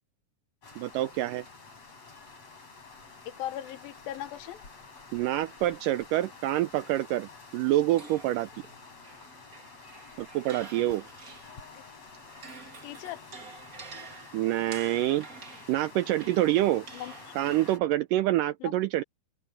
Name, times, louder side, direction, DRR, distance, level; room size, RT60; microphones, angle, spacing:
sound 1, 0.6-17.8, left 4 dB, 40° left, 7.0 m, -49 dB
voice 1, 0.8-1.4 5.1-8.5 10.2-11.0 14.3-15.3 15.7-16.9 17.4-19.0, right 15 dB, 80° right, 1.9 m, -27 dB
voice 2, 3.3-4.6 11.7-11.8 12.8-13.2 16.9-17.3 18.6-18.7, left 12 dB, 75° left, 2.7 m, -38 dB
sound 2, 8.0-11.8 12.1-18.0, right 4 dB, 35° right, 1.6 m, -49 dB
open air
omnidirectional pair, 4.3 m